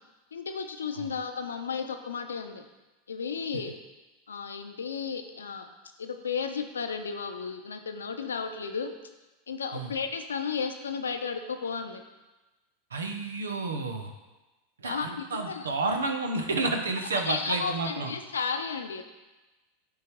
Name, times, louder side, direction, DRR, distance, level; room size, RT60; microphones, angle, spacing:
voice 1, 0.3-2.6 3.1-3.7 4.3-5.7 6.0-8.9 9.5-12.0 14.8-15.7 17.1-19.0, left 5 dB, 90° left, 6 dB, 0.7 m, -33 dB
voice 2, 12.9-14.1 14.8-18.1, right 3 dB, 90° right, 4 dB, 0.9 m, -30 dB
9.5 x 3.8 x 4.6 m, 1.1 s
hypercardioid pair, 100°, 0 cm